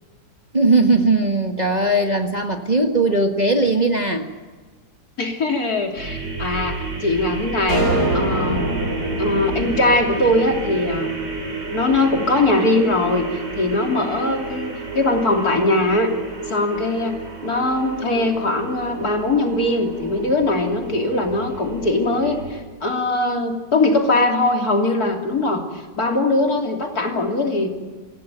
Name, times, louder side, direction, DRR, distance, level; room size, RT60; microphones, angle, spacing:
voice 1, 0.5-4.3, right 2 dB, 25° right, 3 dB, 1.6 m, -18 dB
voice 2, 5.2-7.9 8.1-8.8 9.2-11.1 11.5-16.1 16.5-17.2 17.4-27.7, left 2 dB, 60° left, 2 dB, 3.6 m, -21 dB
sound 1, 6.0-22.6, right 3 dB, 45° right, 5.1 m, -31 dB
sound 2, 7.7-12.1, right 1 dB, 65° right, 4.6 m, -25 dB
25.5 x 17.5 x 9.2 m, 1.4 s
omnidirectional pair, 1.8 m